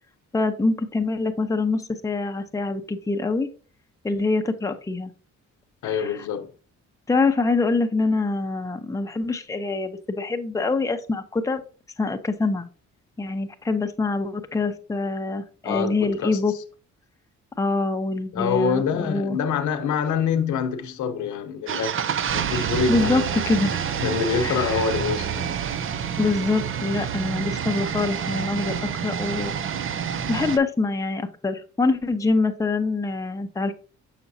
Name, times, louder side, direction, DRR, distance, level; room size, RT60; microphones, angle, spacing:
voice 1, 0.3-3.5 4.0-5.1 5.8-6.2 7.1-11.6 12.0-12.7 13.2-16.5 17.6-19.4 22.5-23.9 24.4-24.8 26.2-28.7 29.0-29.5 29.8-29.9 30.3-33.7, left 3 dB, 10° left, 0.7 m, -25 dB
voice 2, 5.8-6.5 15.6-16.4 18.3-22.0 22.3-23.4 24.0-25.5, left 6 dB, 75° left, 0.9 m, -26 dB
sound 1, 21.7-30.6, right 8 dB, 45° right, 0.5 m, -28 dB
6.9 x 5.8 x 2.7 m
cardioid pair, 90°, 30 cm